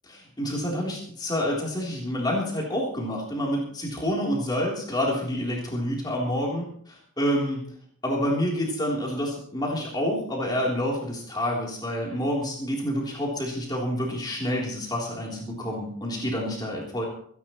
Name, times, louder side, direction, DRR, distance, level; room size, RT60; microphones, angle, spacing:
voice 1, 0.1-7.7 8.0-17.1, equal, 20° left, -3 dB, 3.7 m, -28 dB
27.0 x 11.5 x 3.2 m, 0.62 s
head